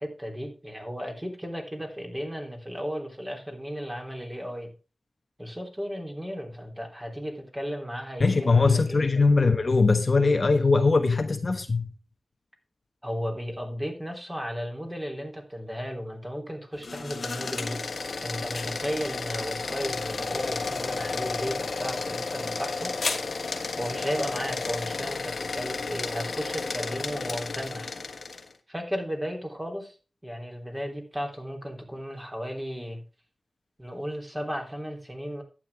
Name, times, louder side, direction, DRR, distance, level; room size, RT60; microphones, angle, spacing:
voice 1, 0.0-4.7 5.4-9.0 13.0-17.8 18.2-23.2 23.8-27.9 28.7-29.9 30.2-33.0 33.8-35.4, equal, 15° right, 3.4 m, -34 dB
voice 2, 8.2-11.9, left 4 dB, 45° left, 1.1 m, -21 dB
sound 1, 16.7-28.5, left 4 dB, 65° left, 1.5 m, -32 dB
11.5 x 8.8 x 3.5 m
wide cardioid pair, 85°, 0 cm